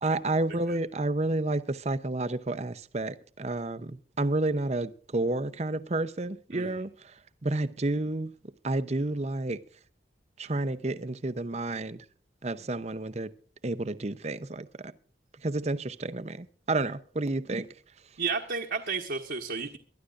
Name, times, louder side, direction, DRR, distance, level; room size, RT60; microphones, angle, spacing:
voice 1, 0.0-7.1 7.4-8.3 8.6-9.6 10.4-12.0 12.4-13.3 13.6-14.9 15.4-17.7, right 2 dB, 35° right, 0.7 m, -30 dB
voice 2, 6.5-6.8 18.2-19.8, right 4 dB, 60° right, 1.2 m, -32 dB
22.5 x 12.5 x 2.5 m
head